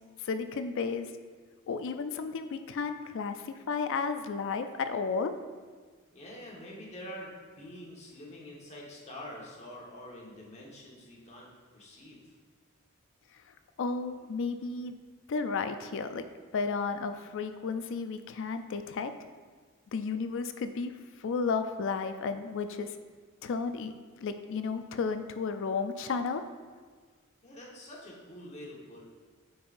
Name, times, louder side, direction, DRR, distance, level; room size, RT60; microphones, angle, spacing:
voice 1, 0.2-1.1 1.7-5.3 13.8-14.9 15.3-16.3 16.5-19.1 19.9-20.9 21.2-22.9 23.4-26.4, left 5 dB, 60° left, 9 dB, 0.4 m, -33 dB
voice 2, 6.1-12.2 27.4-29.0, left 1 dB, 30° left, -3 dB, 1.3 m, -46 dB
8.6 x 5.5 x 2.5 m, 1.5 s
head